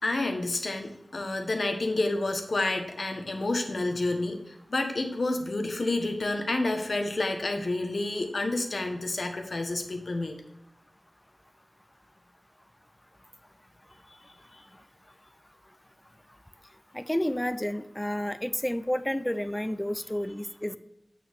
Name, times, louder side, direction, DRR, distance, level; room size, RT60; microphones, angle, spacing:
voice 1, 0.0-10.4, left 2 dB, 65° left, 5 dB, 1.2 m, -29 dB
voice 2, 16.9-20.8, left 1 dB, 10° left, 13 dB, 0.4 m, -30 dB
8.4 x 6.5 x 3.5 m, 0.84 s
wide cardioid pair, 65°, 0 cm